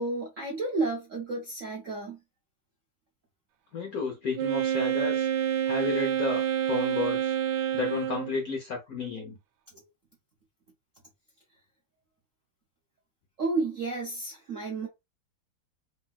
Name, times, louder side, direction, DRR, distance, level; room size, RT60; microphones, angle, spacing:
voice 1, 0.0-2.2 9.7-9.8 13.4-14.9, right 3 dB, 60° right, 0.8 m, -31 dB
voice 2, 3.7-5.3 5.6-7.3 7.7-9.4, left 4 dB, 60° left, 1.0 m, -32 dB
Wind instrument woodwind instrument, 4.4-8.4, right 10 dB, 80° right, 1.5 m, -28 dB
3.3 x 2.8 x 2.3 m
omnidirectional pair, 2.4 m